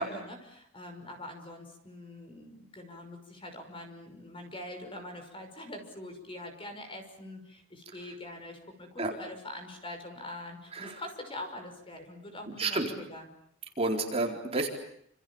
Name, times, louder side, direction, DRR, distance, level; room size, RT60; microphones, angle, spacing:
voice 1, 0.0-13.3, left 1 dB, 25° left, 6 dB, 5.9 m, -44 dB
voice 2, 12.6-12.9 13.8-14.7, right 2 dB, 30° right, 1 dB, 4.3 m, -30 dB
29.0 x 28.0 x 7.2 m, 0.72 s
head